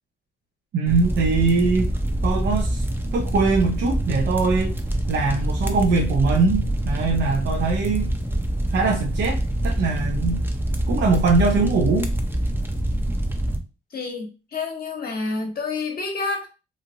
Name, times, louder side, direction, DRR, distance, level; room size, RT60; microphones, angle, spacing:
voice 1, 0.7-1.9 2.2-2.8 3.1-4.8 5.1-8.1 8.7-10.4 10.9-12.1, right 4 dB, 70° right, 0 dB, 0.6 m, -22 dB
sound 1, 0.9-13.6, right 1 dB, 10° right, 0.7 m, -25 dB
voice 2, 13.9-16.5, left 3 dB, 55° left, 1 dB, 1.2 m, -28 dB
3.1 x 2.5 x 2.6 m, 0.31 s
supercardioid pair, 60°, 18 cm